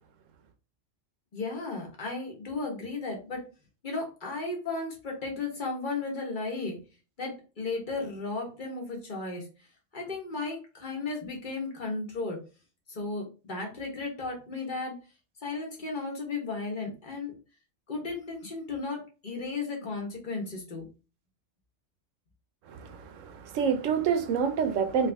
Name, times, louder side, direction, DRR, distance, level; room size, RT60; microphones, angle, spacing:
voice 1, 1.3-3.4 3.8-6.8 7.2-9.4 9.9-12.4 12.9-15.0 15.4-17.3 17.9-20.9, left 3 dB, 40° left, 1.3 m, -34 dB
voice 2, 22.7-25.1, right 6 dB, 80° right, 1.0 m, -27 dB
3.2 x 3.0 x 3.4 m
omnidirectional pair, 1.3 m